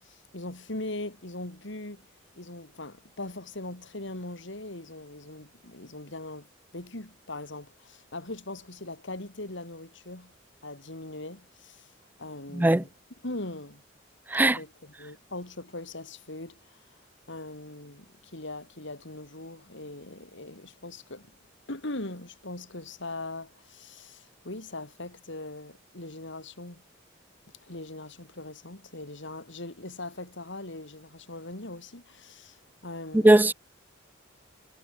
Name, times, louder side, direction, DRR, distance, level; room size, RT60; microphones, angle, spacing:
voice 1, 0.0-2.1 2.4-6.5 6.7-10.3 10.6-11.9 12.2-12.9 13.2-13.8 14.4-16.8 17.3-21.3 21.7-26.8 27.6-33.5, left 2 dB, 65° left, 3.5 m, -40 dB
voice 2, 12.6-12.8 14.3-14.6 33.2-33.5, right 1 dB, 10° right, 0.4 m, -18 dB
head